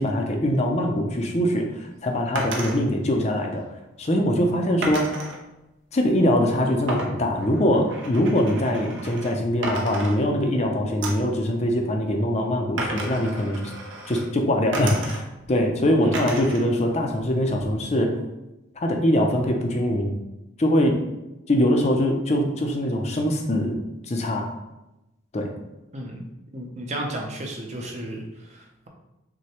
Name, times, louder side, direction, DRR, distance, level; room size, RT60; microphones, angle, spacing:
voice 1, 0.0-3.6 4.0-5.2 5.9-13.7 14.1-18.1 18.8-20.1 20.6-21.0 21.5-23.8 24.1-24.5 25.3-25.5, equal, 35° left, 3 dB, 0.5 m, -23 dB
sound 1, 2.4-2.8 4.8-5.4 6.9-9.4 9.6-10.6 11.0-11.3 12.8-14.3 14.7-15.5 16.1-16.7 17.0-17.8, right 2 dB, 70° right, 0.8 m, -33 dB
voice 2, 25.9-26.2 26.5-28.9, right 1 dB, 35° right, 1 dB, 0.6 m, -34 dB
6.1 x 2.2 x 2.9 m, 0.97 s
head